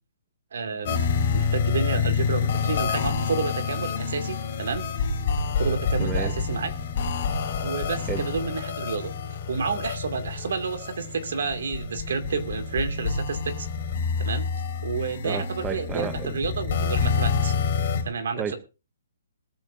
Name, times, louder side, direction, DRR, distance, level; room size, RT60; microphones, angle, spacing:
voice 1, 0.5-1.1 1.3-4.9 5.6-6.7 7.6-9.1 9.5-13.7 14.2-14.5 14.8-17.5 18.0-18.6, right 5 dB, 55° right, 8 dB, 2.3 m, -30 dB
sound 1, 0.9-18.0, left 5 dB, 35° left, 3.4 m, -28 dB
voice 2, 6.0-6.3 8.1-8.3 15.2-16.3 18.3-18.5, right 7 dB, 10° right, 10 dB, 0.6 m, -31 dB
21.0 x 13.5 x 2.6 m, 0.31 s
hypercardioid pair, 180°, 0 cm